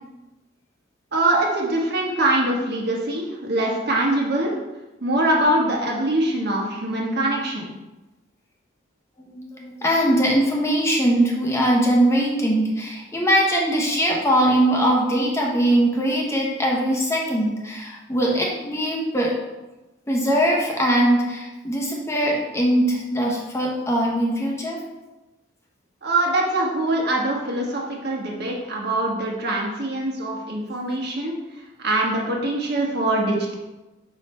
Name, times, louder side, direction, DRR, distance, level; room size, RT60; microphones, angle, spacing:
voice 1, 1.1-4.5 5.0-7.7 26.0-31.3 31.8-33.5, right 1 dB, 55° right, -2 dB, 1.4 m, -23 dB
voice 2, 9.2-19.4 20.1-24.8, right 1 dB, 15° left, -2 dB, 0.9 m, -21 dB
5.5 x 5.3 x 4.4 m, 1.1 s
head